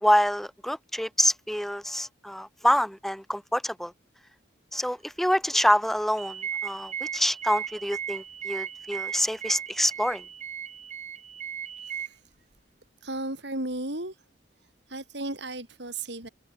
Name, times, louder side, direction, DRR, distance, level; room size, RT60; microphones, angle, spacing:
voice 1, 0.0-3.9 4.7-10.2, equal, ahead, 1.6 m, -26 dB
sound 1, 6.2-12.1, right 8 dB, 40° right, 6.4 m, -36 dB
voice 2, 11.8-12.3 13.0-14.3 14.6-16.3, right 2 dB, 65° right, 7.1 m, -35 dB
head